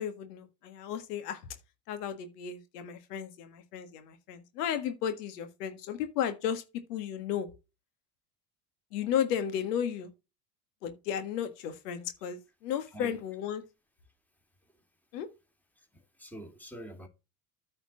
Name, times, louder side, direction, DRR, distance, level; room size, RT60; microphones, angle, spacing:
voice 1, 0.0-1.4 1.9-6.6 6.9-7.6 8.9-10.1 10.8-13.6 15.1-15.3, left 9 dB, 75° left, 1.7 m, -34 dB
voice 2, 15.8-17.1, right 1 dB, 5° left, 2.6 m, -46 dB
9.2 x 4.3 x 6.0 m
hypercardioid pair, 80°, 47 cm